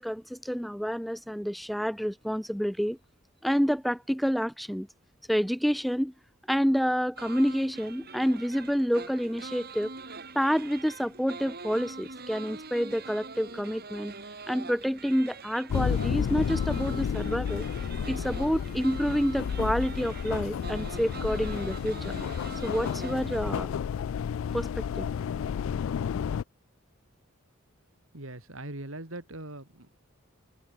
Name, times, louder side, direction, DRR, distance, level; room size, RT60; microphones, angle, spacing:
voice 1, 0.0-3.0 3.4-4.9 5.3-6.1 6.5-9.9 10.3-14.1 14.5-17.6 18.1-22.1 22.6-23.8 24.5-24.7 25.0-25.1, equal, ahead, 1.0 m, -28 dB
sound 1, 7.2-23.6, right 4 dB, 50° right, 5.4 m, -44 dB
sound 2, 15.7-26.4, left 7 dB, 70° left, 0.3 m, -31 dB
voice 2, 28.1-30.0, right 1 dB, 75° right, 3.9 m, -41 dB
head